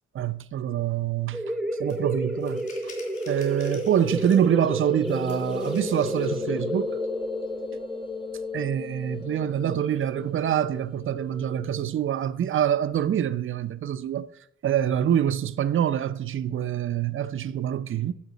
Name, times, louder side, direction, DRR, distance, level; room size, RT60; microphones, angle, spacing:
voice 1, 0.2-1.4 1.8-2.7 3.3-6.9 8.5-14.3 14.6-18.1, right 10 dB, 45° right, 0.5 m, -25 dB
sound 1, 1.3-10.7, equal, ahead, 0.8 m, -32 dB
sound 2, 1.9-2.0 2.4-4.6 5.0-6.5, left 4 dB, 70° left, 3.7 m, -50 dB
sound 3, 4.9-12.3, left 5 dB, 15° left, 0.5 m, -38 dB
12.0 x 7.2 x 4.0 m
cardioid pair, 90°, 30 cm